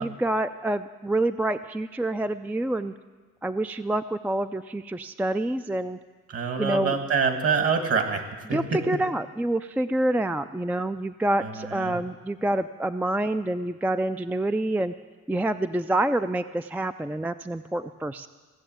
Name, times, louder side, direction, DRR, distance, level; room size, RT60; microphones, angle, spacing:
voice 1, 0.0-2.9 3.4-6.0 6.6-7.0 8.5-14.9 15.3-18.3, right 1 dB, 5° right, 10 dB, 0.3 m, -27 dB
voice 2, 6.3-8.2 8.5-8.8 11.4-12.0, right 5 dB, 50° right, 6 dB, 1.8 m, -26 dB
17.0 x 6.9 x 9.0 m, 1.3 s
cardioid pair, 90°, 30 cm